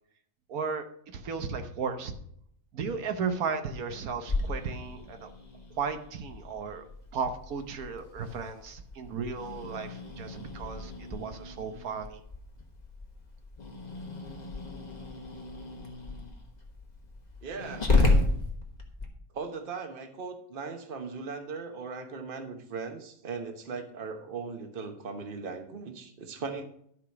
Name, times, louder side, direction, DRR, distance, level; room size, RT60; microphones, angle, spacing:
voice 1, 0.5-0.9 1.1-2.1 2.7-5.3 5.8-6.8 7.1-12.2, right 5 dB, 80° right, 8 dB, 1.4 m, -35 dB
Growling, 4.3-19.1, left 2 dB, 30° left, 1.4 m, -33 dB
voice 2, 17.4-18.3 19.3-26.6, right 4 dB, 40° right, 6 dB, 1.2 m, -38 dB
12.0 x 4.9 x 5.9 m, 0.69 s
omnidirectional pair, 1.5 m